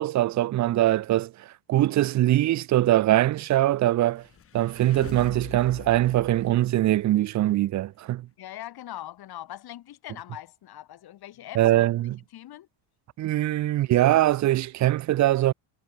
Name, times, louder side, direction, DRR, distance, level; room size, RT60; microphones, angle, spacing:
voice 1, 0.0-4.3 4.5-8.3 11.6-12.2 13.2-15.5, right 14 dB, 35° right, 0.5 m, -22 dB
sound 1, 4.0-7.6, left 8 dB, 30° left, 1.6 m, -44 dB
voice 2, 8.4-11.8 12.3-12.7, left 13 dB, 50° left, 3.3 m, -41 dB
cardioid pair, 155°, 49 cm